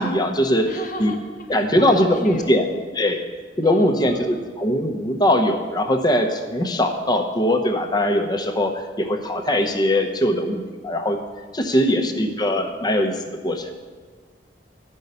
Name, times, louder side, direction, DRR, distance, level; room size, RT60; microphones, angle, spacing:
voice 1, 0.0-0.7 1.0-1.1 1.5-2.7 2.9-3.2 3.6-11.2 11.5-13.1 13.4-13.7, left 1 dB, 25° left, 4 dB, 0.8 m, -21 dB
voice 2, 0.7-2.5 3.1-3.2 3.6-4.4 11.7-12.5, left 1 dB, 50° left, 4 dB, 1.2 m, -35 dB
12.0 x 5.4 x 6.7 m, 1.5 s
head